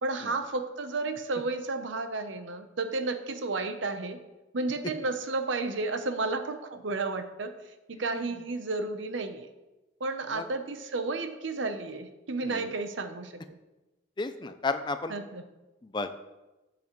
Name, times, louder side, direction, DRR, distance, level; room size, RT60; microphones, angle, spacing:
voice 1, 0.0-4.2 4.5-7.5 7.9-9.5 10.0-13.6 15.1-15.4, right 3 dB, 70° right, 8 dB, 0.8 m, -32 dB
voice 2, 14.2-15.1 15.8-16.1, left 3 dB, 25° left, 10 dB, 0.4 m, -33 dB
12.5 x 6.9 x 3.1 m, 1.1 s
head